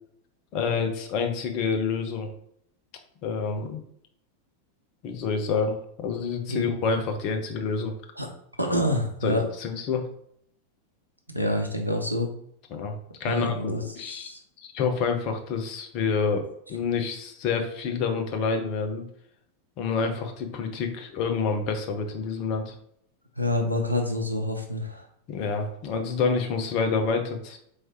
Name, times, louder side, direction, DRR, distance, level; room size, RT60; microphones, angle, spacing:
voice 1, 0.5-2.3 3.2-3.8 5.0-7.9 9.2-10.0 12.7-14.3 14.6-16.4 16.7-19.0 19.8-22.7 25.3-27.6, left 5 dB, 40° left, 5 dB, 0.7 m, -28 dB
voice 2, 8.6-9.5 11.3-12.3 13.2-14.4 23.4-25.1, left 1 dB, 90° right, 3 dB, 0.6 m, -27 dB
4.4 x 3.2 x 2.8 m, 0.70 s
figure-of-eight pair, 90°, 0 cm